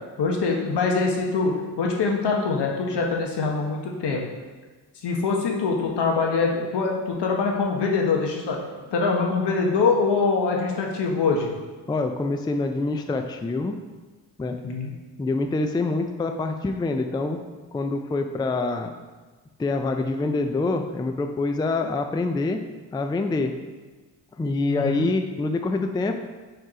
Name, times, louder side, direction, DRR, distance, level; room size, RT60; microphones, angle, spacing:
voice 1, 0.2-4.2 5.0-8.6 8.9-11.5 14.6-14.9 24.7-25.1, left 4 dB, 75° left, 0 dB, 1.3 m, -24 dB
voice 2, 11.9-13.8 14.4-14.6 15.2-17.4 17.7-18.9 19.6-22.6 22.9-23.5 24.4-26.2, left 3 dB, 10° left, 6 dB, 0.3 m, -25 dB
4.6 x 4.6 x 4.8 m, 1.3 s
cardioid pair, 90°, 42 cm